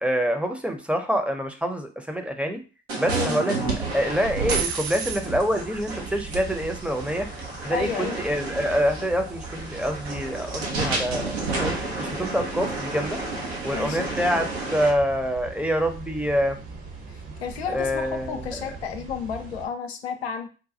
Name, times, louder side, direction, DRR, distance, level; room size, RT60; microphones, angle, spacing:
voice 1, 0.0-2.6 3.0-3.5 3.9-7.3 7.6-13.2 13.6-16.6 17.7-18.4, equal, 5° right, 5 dB, 0.6 m, -26 dB
sound 1, 2.9-14.9, right 3 dB, 85° right, 0.7 m, -31 dB
sound 2, 3.6-19.7, right 4 dB, 60° right, 1.1 m, -41 dB
voice 2, 7.7-8.2 13.7-14.1 17.4-20.5, left 6 dB, 85° left, 5 dB, 0.5 m, -31 dB
4.1 x 2.2 x 2.7 m, 0.34 s
figure-of-eight pair, 50°, 30 cm